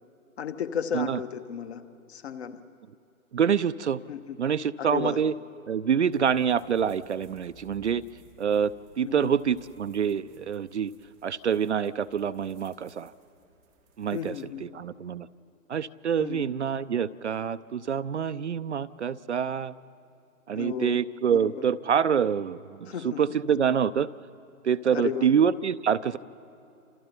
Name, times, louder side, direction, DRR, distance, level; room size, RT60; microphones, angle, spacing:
voice 1, 0.4-1.8 2.1-2.6 4.1-4.4 4.8-5.2 9.0-9.4 14.1-14.7 16.2-16.5 20.5-21.0 21.3-21.6 22.9-23.2 24.9-25.3, left 7 dB, 45° left, 10 dB, 1.3 m, -33 dB
voice 2, 3.3-4.0 4.4-5.3 5.7-8.0 8.4-10.9 11.2-13.1 14.0-14.3 14.6-15.3 15.7-19.7 20.5-24.1 24.6-26.2, right 7 dB, 50° right, 13 dB, 0.5 m, -26 dB
sound 1, 6.1-14.5, right 5 dB, ahead, 0.5 m, -59 dB
29.5 x 26.5 x 4.4 m, 2.9 s
figure-of-eight pair, 130°, 45 cm